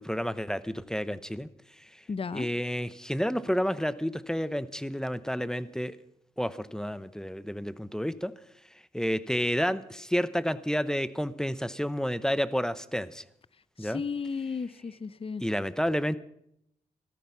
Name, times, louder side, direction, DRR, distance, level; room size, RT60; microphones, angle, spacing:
voice 1, 0.0-1.5 1.8-1.9 2.3-6.0 6.4-8.3 8.9-13.2 13.8-14.0 15.4-16.2, equal, 5° left, 16 dB, 0.9 m, -30 dB
voice 2, 2.1-2.5 13.8-15.4, left 5 dB, 35° left, 19 dB, 0.6 m, -34 dB
14.5 x 13.5 x 5.7 m, 0.75 s
cardioid pair, 50°, 17 cm